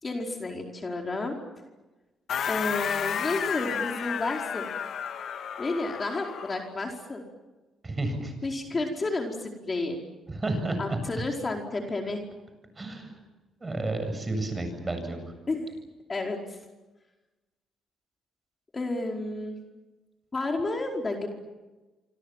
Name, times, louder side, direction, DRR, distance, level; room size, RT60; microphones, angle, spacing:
voice 1, 0.0-1.3 2.5-4.7 5.6-7.2 8.4-10.0 10.8-12.2 15.5-15.7 16.1-16.4 18.7-19.6 20.3-21.3, left 2 dB, 30° left, 2 dB, 4.8 m, -31 dB
sound 1, 2.3-6.7, left 8 dB, 65° left, 2.0 m, -32 dB
voice 2, 7.8-8.3 10.3-11.2 12.8-13.2 13.6-15.3, right 2 dB, 25° right, 7 dB, 7.8 m, -31 dB
26.5 x 26.5 x 7.5 m, 1.1 s
cardioid pair, 90°, 0 cm